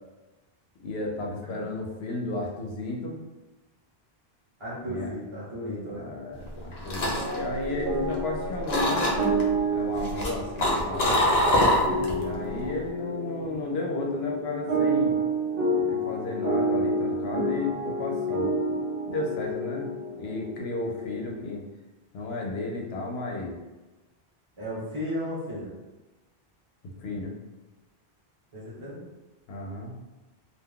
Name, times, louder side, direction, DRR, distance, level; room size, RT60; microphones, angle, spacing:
voice 1, 0.8-3.2 4.8-5.1 5.9-9.1 9.7-11.2 12.1-15.2 15.9-18.6 19.1-19.9 20.2-21.6 22.1-23.6 27.0-27.3 29.5-30.0, left 2 dB, 90° left, 0 dB, 0.9 m, -33 dB
voice 2, 4.6-6.1 24.6-25.7 28.5-29.0, equal, 30° right, -7 dB, 1.0 m, -34 dB
sound 1, 6.5-8.3 8.7-9.4 10.0-12.2 12.5-12.9, left 1 dB, 50° left, 0.6 m, -24 dB
sound 2, 7.1-21.4, right 1 dB, 65° right, 0.9 m, -29 dB
2.4 x 2.3 x 3.6 m, 1.1 s
omnidirectional pair, 1.0 m